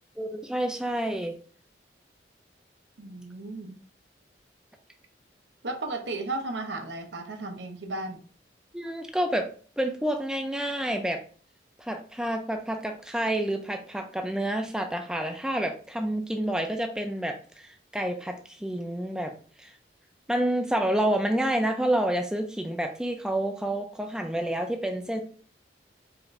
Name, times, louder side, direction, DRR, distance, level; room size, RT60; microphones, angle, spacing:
voice 1, 0.2-1.4 8.7-9.5 9.8-11.2 11.8-19.7 20.3-25.2, right 1 dB, 5° right, 4 dB, 0.4 m, -29 dB
voice 2, 3.0-3.8 5.6-8.2, right 2 dB, 80° right, 4 dB, 0.8 m, -34 dB
4.8 x 2.5 x 3.1 m, 0.41 s
head